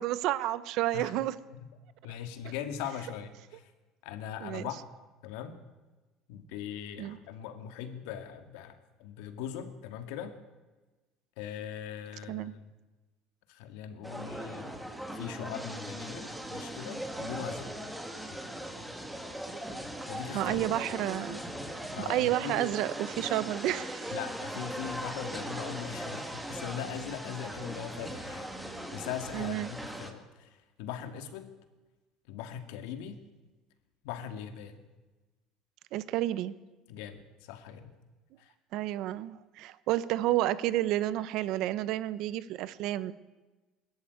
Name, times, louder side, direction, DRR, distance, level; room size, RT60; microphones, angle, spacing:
voice 1, 0.0-1.3 4.4-4.7 7.0-7.2 12.3-12.5 20.3-21.4 22.0-24.1 29.3-29.7 35.9-36.5 38.7-43.1, right 14 dB, 55° right, 16 dB, 0.9 m, -30 dB
voice 2, 2.0-3.7 4.0-4.8 5.2-5.6 6.3-10.3 11.4-12.7 13.5-14.8 15.1-17.7 18.3-18.4 20.1-20.6 21.9-22.7 24.1-31.5 32.3-33.2 34.0-34.8 36.9-38.0 38.4-38.5, left 9 dB, 90° left, 8 dB, 2.3 m, -40 dB
sound 1, 14.0-30.1, right 1 dB, 5° right, 1.8 m, -39 dB
21.5 x 13.5 x 9.5 m, 1.2 s
cardioid pair, 165°, 0 cm